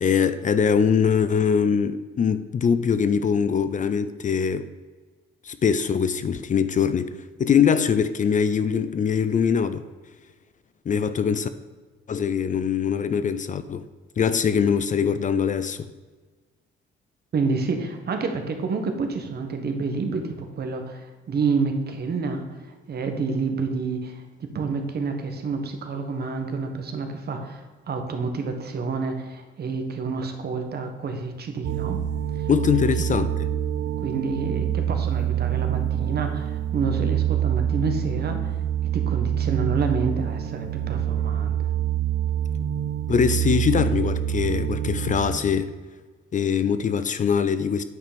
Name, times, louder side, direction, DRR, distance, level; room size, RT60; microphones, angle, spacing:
voice 1, 0.0-4.7 5.4-7.1 7.4-9.8 10.9-11.5 12.1-13.8 14.2-15.9 32.5-33.3 43.1-45.7 46.3-47.8, left 7 dB, 40° left, 0.5 m, -22 dB
voice 2, 17.3-32.0 32.3-32.5 33.0-33.2 34.0-41.7, right 4 dB, 55° right, 1.4 m, -29 dB
sound 1, 31.6-45.4, right 10 dB, 75° right, 0.8 m, -26 dB
9.3 x 5.7 x 5.2 m
cardioid pair, 90°, 20 cm